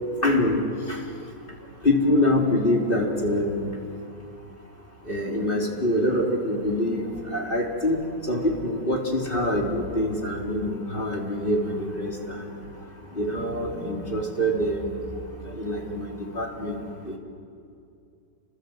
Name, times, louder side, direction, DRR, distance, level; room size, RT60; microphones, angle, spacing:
voice 1, 0.2-0.6 0.9-1.0 1.8-3.7 5.1-8.0 8.3-12.5 13.2-15.0 15.6-16.8 17.1-17.2, left 1 dB, 25° left, -1 dB, 3.6 m, -25 dB
29.0 x 26.0 x 7.7 m, 2.5 s
omnidirectional pair, 2.0 m